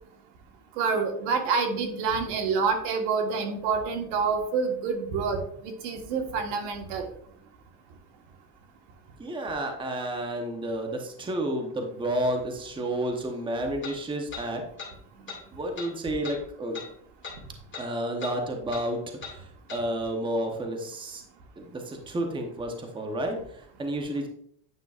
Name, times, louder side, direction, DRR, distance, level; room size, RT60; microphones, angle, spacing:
voice 1, 0.8-7.1, right 5 dB, 80° right, 4 dB, 1.5 m, -27 dB
voice 2, 9.2-14.6 15.5-16.8 17.8-19.0 19.3-21.2 21.6-24.3, right 1 dB, 10° right, 3 dB, 0.8 m, -31 dB
sound 1, 12.2-12.3 13.8-14.0 14.3-14.5 14.8-14.9 15.3-15.4 15.8-15.9 16.2-16.4 16.7-16.9 17.2-17.4 17.7-17.9 18.2-18.4 18.7-18.9 19.2-19.4 19.7-19.8, left 5 dB, 25° left, 2.2 m, -39 dB
9.5 x 5.7 x 2.4 m, 0.67 s
cardioid pair, 135°, 48 cm